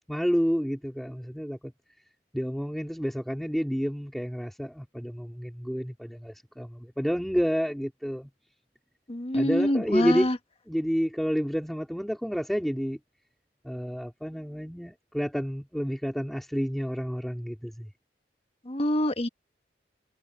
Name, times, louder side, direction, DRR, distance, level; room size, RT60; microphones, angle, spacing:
voice 1, 0.1-1.7 2.3-8.3 9.3-10.3 10.7-13.0 13.6-17.9, equal, ahead, 3.3 m, -29 dB
voice 2, 9.1-10.3 18.7-19.3, left 1 dB, 35° left, 1.5 m, -25 dB
head